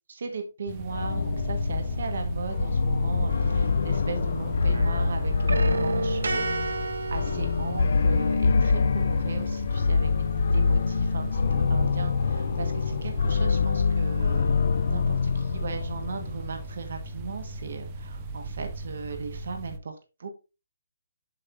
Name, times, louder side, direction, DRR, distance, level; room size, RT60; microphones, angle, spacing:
voice 1, 0.1-6.8 7.1-10.1 10.5-20.3, right 4 dB, 50° right, 6 dB, 1.4 m, -37 dB
sound 1, 0.7-19.8, right 2 dB, 20° right, 0.5 m, -38 dB
sound 2, 0.9-16.6, left 5 dB, 45° left, 0.5 m, -25 dB
sound 3, 3.3-4.4 4.7-8.2, right 3 dB, 70° right, 0.9 m, -32 dB
7.4 x 6.6 x 2.6 m, 0.30 s
hypercardioid pair, 175°, 0 cm